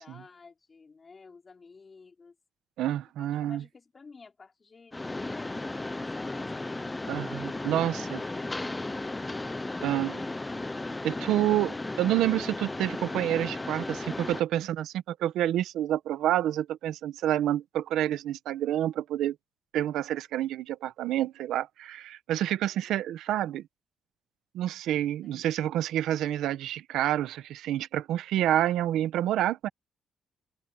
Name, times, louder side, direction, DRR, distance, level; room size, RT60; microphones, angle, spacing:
voice 1, 0.0-2.4 3.2-6.5 7.2-8.7 9.5-10.5 22.6-23.0 25.2-25.5, left 4 dB, 35° left, 5.1 m, -52 dB
voice 2, 2.8-3.6 7.1-8.2 9.8-10.1 11.0-19.4 19.7-23.7 24.5-29.7, right 12 dB, 85° right, 1.1 m, -28 dB
Mechanisms, 4.9-14.4, left 2 dB, 15° left, 0.7 m, -35 dB
cardioid pair, 90°, 0 cm